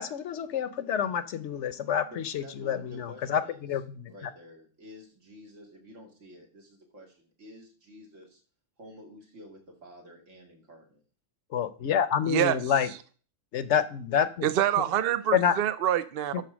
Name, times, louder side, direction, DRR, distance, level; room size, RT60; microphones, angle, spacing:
voice 1, 0.0-4.1 11.5-12.9 13.5-14.5 15.3-15.6 16.3-16.4, left 8 dB, 70° left, 14 dB, 1.0 m, -28 dB
voice 2, 2.1-3.7 4.1-8.4 8.8-11.0, left 1 dB, 80° right, 1 dB, 2.7 m, -50 dB
voice 3, 12.3-12.6 14.4-16.4, right 11 dB, 60° right, 13 dB, 0.7 m, -26 dB
11.5 x 4.0 x 6.1 m, 0.40 s
omnidirectional pair, 1.3 m